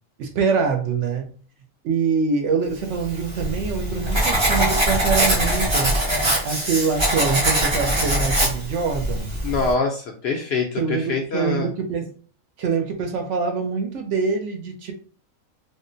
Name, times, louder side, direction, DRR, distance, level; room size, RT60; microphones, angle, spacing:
voice 1, 0.2-1.3 1.8-6.0 6.4-9.4 10.8-12.1 12.6-14.9, right 5 dB, 65° right, 4 dB, 0.9 m, -24 dB
Writing, 3.0-9.7, right 1 dB, 30° right, 0.6 m, -22 dB
voice 2, 9.4-11.7, left 4 dB, 65° left, 2 dB, 0.7 m, -24 dB
3.6 x 2.1 x 2.6 m, 0.41 s
omnidirectional pair, 1.4 m